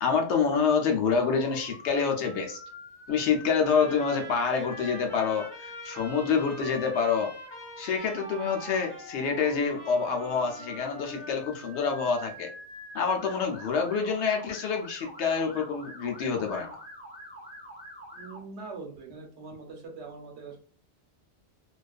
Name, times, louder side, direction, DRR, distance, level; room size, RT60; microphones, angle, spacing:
voice 1, 0.0-2.6 3.1-7.3 7.8-12.5 12.9-16.8, left 5 dB, 75° left, 3 dB, 0.9 m, -27 dB
Motor vehicle (road) / Siren, 1.1-18.4, equal, 10° left, 1.0 m, -46 dB
Trumpet, 3.6-11.5, right 1 dB, 25° left, 1.1 m, -45 dB
voice 2, 18.1-20.6, right 4 dB, 70° right, 1 dB, 1.0 m, -42 dB
2.4 x 2.3 x 2.3 m, 0.41 s
omnidirectional pair, 1.2 m